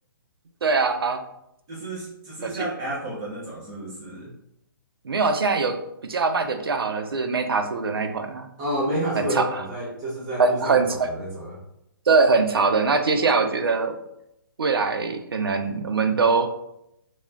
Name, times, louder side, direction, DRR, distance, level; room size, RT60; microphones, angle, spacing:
voice 1, 0.6-1.2 2.4-2.5 5.0-5.8 6.0-8.5 9.2-9.5 10.4-11.1 12.1-14.0 14.6-16.5, right 4 dB, 85° right, 6 dB, 0.4 m, -22 dB
voice 2, 1.7-4.3 8.6-11.6, right 1 dB, 30° right, -5 dB, 0.8 m, -30 dB
2.4 x 2.1 x 3.3 m, 0.80 s
hypercardioid pair, 135°, 12 cm